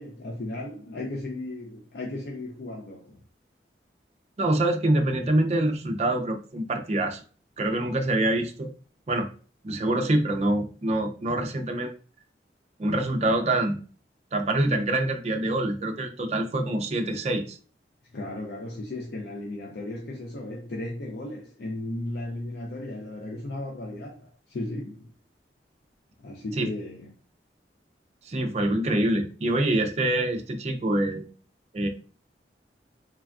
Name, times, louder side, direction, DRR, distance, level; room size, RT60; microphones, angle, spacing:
voice 1, 0.0-3.2 18.1-25.1 26.2-27.1, left 1 dB, 65° left, 0.4 m, -35 dB
voice 2, 4.4-7.2 7.6-8.7 9.1-9.3 9.6-11.9 12.8-13.8 14.3-17.6 26.6-26.7 28.3-31.2 31.7-31.9, right 1 dB, 35° right, 0.4 m, -25 dB
3.3 x 2.2 x 2.3 m
head